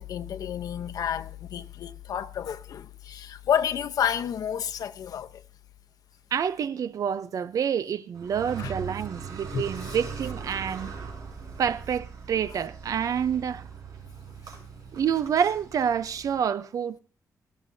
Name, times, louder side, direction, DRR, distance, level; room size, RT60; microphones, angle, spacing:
voice 1, 0.0-5.3 8.6-8.7 9.5-9.7, left 9 dB, 80° left, 0.9 m, -30 dB
voice 2, 6.3-11.0 11.6-13.6 14.9-17.0, right 8 dB, 65° right, 0.7 m, -28 dB
Car, 8.1-16.4, right 6 dB, 80° right, 5.6 m, -40 dB
17.5 x 16.5 x 2.8 m
wide cardioid pair, 160°, 6 cm